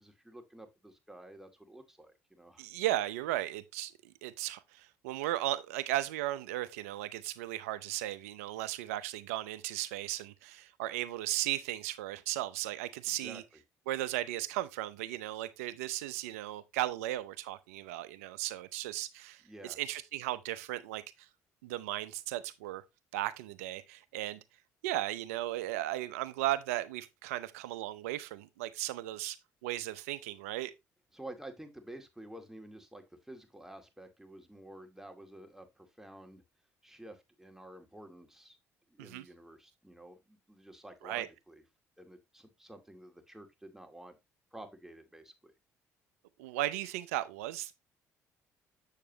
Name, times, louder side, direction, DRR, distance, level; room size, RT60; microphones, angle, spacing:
voice 1, 0.0-2.6 13.1-13.4 19.4-19.8 31.1-36.4 36.8-38.6 38.9-41.6 42.0-44.2 44.5-45.5, right 1 dB, 5° right, 2.1 m, -51 dB
voice 2, 2.6-13.4 13.9-21.3 21.6-22.8 23.1-24.4 24.8-29.4 29.6-30.7 39.0-39.2 41.0-41.3 46.4-47.7, right 15 dB, 85° right, 0.6 m, -36 dB
7.4 x 6.7 x 2.8 m
hypercardioid pair, 55°, 8 cm